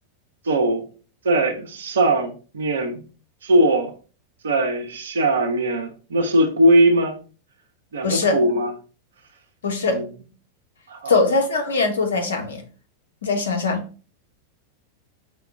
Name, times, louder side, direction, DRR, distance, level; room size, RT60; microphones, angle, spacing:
voice 1, 0.5-0.8 1.2-3.0 3.4-3.9 4.4-7.2 7.9-8.7 9.8-10.0 10.9-11.2, right 1 dB, 65° right, 0.7 m, -20 dB
voice 2, 8.0-8.4 9.6-10.0 11.1-12.6 13.2-13.8, left 3 dB, 70° left, 0.9 m, -21 dB
5.4 x 2.3 x 3.3 m
figure-of-eight pair, 90°, 0 cm